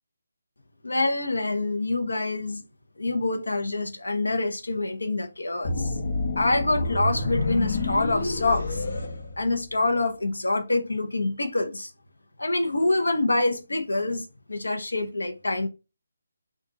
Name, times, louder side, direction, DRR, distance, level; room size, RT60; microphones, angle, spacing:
voice 1, 0.8-2.6 3.0-5.9 6.4-8.8 9.4-11.9 12.4-15.7, left 2 dB, 90° left, 0.9 m, -26 dB
sound 1, 5.6-9.9, left 2 dB, 60° left, 1.1 m, -28 dB
4.1 x 2.5 x 4.7 m
figure-of-eight pair, 160°, 0 cm